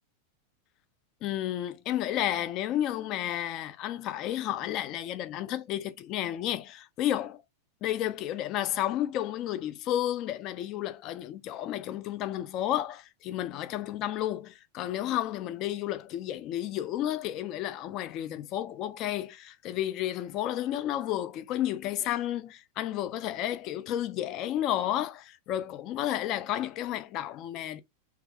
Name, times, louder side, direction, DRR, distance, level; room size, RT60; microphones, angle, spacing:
voice 1, 1.2-7.4 7.8-27.8, left 12 dB, 40° left, 0.3 m, -32 dB
3.3 x 2.3 x 2.4 m
figure-of-eight pair, 90°, 0 cm